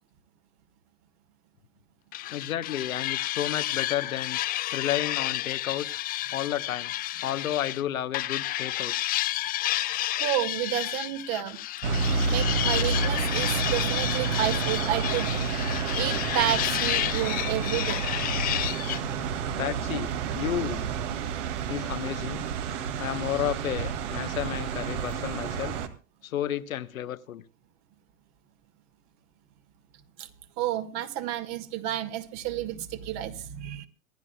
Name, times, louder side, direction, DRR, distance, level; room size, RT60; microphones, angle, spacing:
sound 1, 2.1-7.8 8.1-19.0, left 15 dB, 20° left, 0.5 m, -31 dB
voice 1, 2.3-4.4 4.7-5.9 6.3-6.9 7.2-8.9 19.6-20.8 21.7-22.5 23.0-25.8 26.2-27.4, left 11 dB, 75° left, 1.2 m, -31 dB
voice 2, 10.2-11.6 12.3-15.3 16.0-18.0 30.2-30.3 30.6-33.9, right 13 dB, 40° right, 1.9 m, -30 dB
sound 2, 11.8-25.9, right 5 dB, 60° right, 2.2 m, -29 dB
26.0 x 11.0 x 2.3 m
hypercardioid pair, 105°, 41 cm